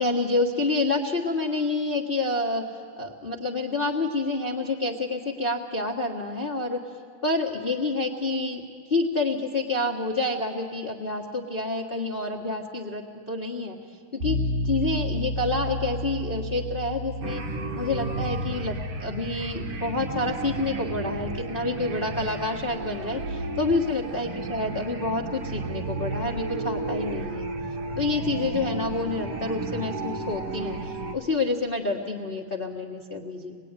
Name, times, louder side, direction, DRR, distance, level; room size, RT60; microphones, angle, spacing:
voice 1, 0.0-2.6 3.0-6.8 7.2-8.6 8.9-13.8 14.1-14.4 14.6-17.4 17.7-27.5 28.0-33.6, left 2 dB, 35° left, -1 dB, 0.8 m, -28 dB
sound 1, 14.2-23.1, left 1 dB, 85° right, 5.5 m, -34 dB
sound 2, 17.2-31.2, right 2 dB, 55° right, 2.0 m, -33 dB
26.0 x 21.0 x 9.7 m, 2.1 s
omnidirectional pair, 3.7 m